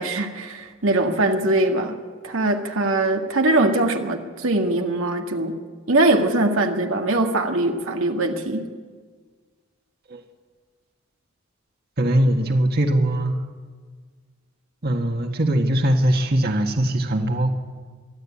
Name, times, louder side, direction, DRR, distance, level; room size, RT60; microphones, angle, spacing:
voice 1, 0.0-2.0 2.2-5.5 5.9-8.7, right 2 dB, 90° right, 2 dB, 1.9 m, -21 dB
voice 2, 12.0-13.4 14.8-17.5, right 1 dB, 50° right, 3 dB, 1.7 m, -21 dB
23.5 x 13.5 x 8.6 m, 1.5 s
head